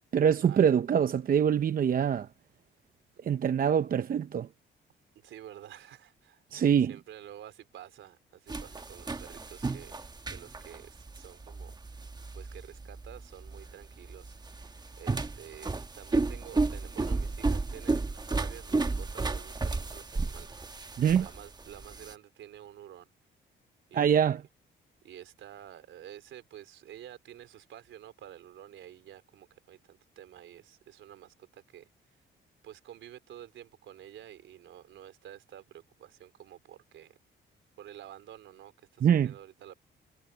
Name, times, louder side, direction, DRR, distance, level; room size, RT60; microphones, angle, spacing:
voice 1, 0.1-2.3 3.2-4.5 6.5-6.9 21.0-21.2 23.9-24.4 39.0-39.3, right 8 dB, 45° right, 0.7 m, -24 dB
voice 2, 5.2-10.0 10.3-11.7 12.3-23.1 23.9-24.4 25.0-31.9 32.6-37.2 37.8-39.7, right 11 dB, 75° right, 3.7 m, -50 dB
sound 1, 8.5-22.1, right 3 dB, 20° right, 1.2 m, -33 dB
cardioid pair, 90°, 20 cm